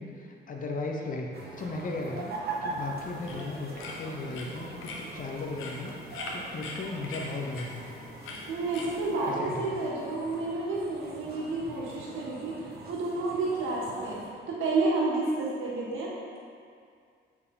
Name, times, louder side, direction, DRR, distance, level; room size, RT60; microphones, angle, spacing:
voice 1, 0.0-2.3 2.6-7.9 9.3-9.8, left 3 dB, 45° left, 1 dB, 0.8 m, -36 dB
sound 1, 1.3-14.3, right 3 dB, 50° right, 1.3 m, -42 dB
sound 2, 2.7-9.2, left 2 dB, 85° left, 1.0 m, -43 dB
voice 2, 8.5-14.2 14.5-16.4, right 3 dB, 85° right, -5 dB, 1.7 m, -30 dB
8.4 x 4.7 x 3.8 m, 2.2 s
cardioid pair, 90°, 20 cm